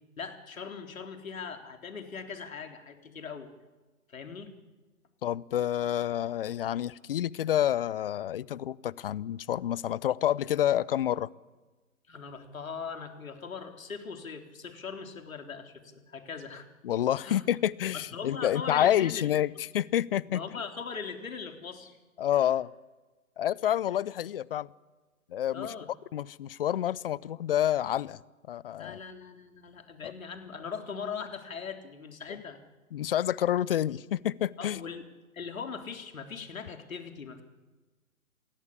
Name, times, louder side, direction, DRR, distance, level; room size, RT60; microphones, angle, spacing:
voice 1, 0.2-3.5 4.1-4.5 12.1-16.7 17.2-17.4 17.9-19.3 20.3-22.0 22.3-22.4 25.5-25.9 28.8-32.6 34.6-35.0 35.3-37.4, left 5 dB, 70° left, 5 dB, 3.8 m, -40 dB
voice 2, 5.2-11.3 16.8-20.4 22.2-22.7 23.4-24.7 25.3-25.7 26.1-28.2 28.5-29.0 30.0-30.1 32.3-32.4 32.9-34.8, left 11 dB, 40° left, 23 dB, 0.7 m, -28 dB
27.0 x 18.0 x 8.7 m, 1.3 s
hypercardioid pair, 135°, 42 cm